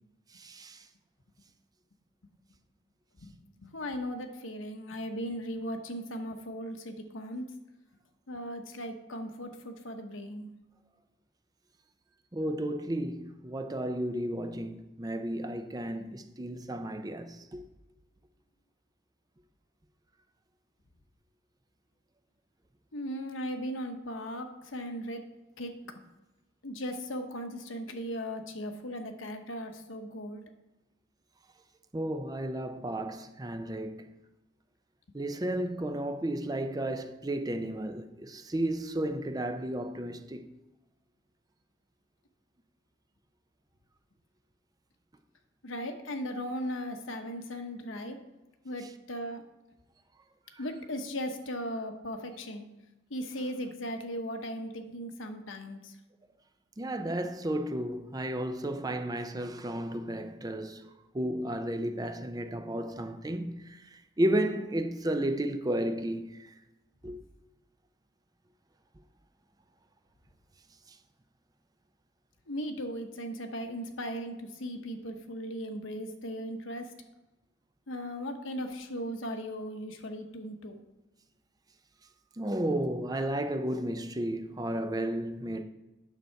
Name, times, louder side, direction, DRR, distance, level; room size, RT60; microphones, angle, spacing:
voice 1, 0.3-0.8 12.3-17.6 31.9-34.1 35.1-40.5 48.8-48.9 50.5-50.6 56.8-60.9 61.1-66.5 67.0-67.2 82.4-85.6, right 1 dB, 20° right, 0.5 m, -33 dB
voice 2, 3.6-7.4 8.3-10.5 22.9-25.2 25.6-25.7 26.6-30.4 45.6-48.2 48.6-49.4 50.6-52.7 53.1-55.9 72.5-76.8 77.9-80.8, equal, 80° left, 1.1 m, -37 dB
9.2 x 6.8 x 4.5 m
head